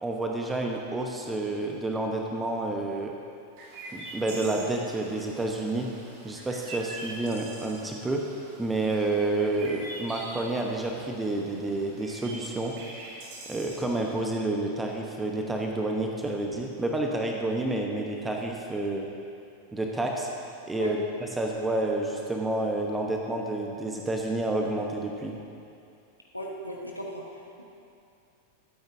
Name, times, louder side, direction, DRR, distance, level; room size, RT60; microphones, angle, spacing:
voice 1, 0.0-3.1 3.9-5.9 6.2-8.2 8.6-12.7 13.5-19.1 19.7-20.3 20.7-21.0 21.4-25.3, right 2 dB, 10° right, 1 dB, 1.0 m, -29 dB
Chirp tweet, 3.6-14.2, right 1 dB, 45° right, 2.0 m, -44 dB
voice 2, 26.3-27.6, equal, 90° left, -2 dB, 1.2 m, -37 dB
20.0 x 9.2 x 2.7 m, 2.6 s
figure-of-eight pair, 90°, 0 cm